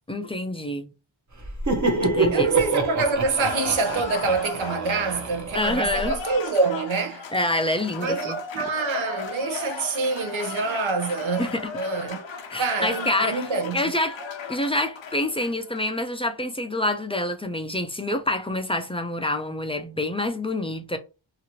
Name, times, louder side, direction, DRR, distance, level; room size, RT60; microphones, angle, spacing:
voice 1, 0.1-0.9 2.0-2.5 5.5-6.2 7.3-8.4 11.4-11.7 12.5-13.4 13.7-14.2 14.5-21.0, left 1 dB, 15° left, 0.4 m, -27 dB
Laughter, 1.4-6.1, right 3 dB, 35° right, 0.8 m, -26 dB
voice 2, 2.3-7.3 8.0-12.3 12.6-13.8, right 4 dB, 75° right, 0.8 m, -26 dB
Cheering / Applause, 3.2-15.8, left 5 dB, 70° left, 0.7 m, -36 dB
2.9 x 2.5 x 2.7 m
wide cardioid pair, 125°, 48 cm